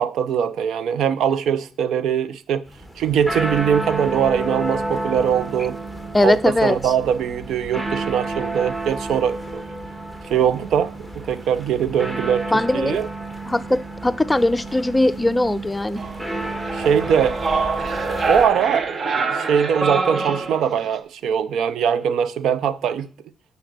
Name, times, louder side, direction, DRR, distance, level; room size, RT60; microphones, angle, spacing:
voice 1, 0.0-2.7 3.0-5.8 6.2-9.6 10.3-12.5 12.7-13.1 16.7-17.4 18.0-23.1, right 8 dB, 75° right, 0.5 m, -21 dB
sound 1, 2.7-18.4, right 2 dB, 15° right, 1.5 m, -30 dB
voice 2, 6.1-6.9 12.5-13.0 13.5-16.0, left 1 dB, 15° left, 0.5 m, -20 dB
sound 2, 16.0-21.0, right 4 dB, 45° right, 0.9 m, -26 dB
10.5 x 4.1 x 6.6 m
cardioid pair, 90°, 0 cm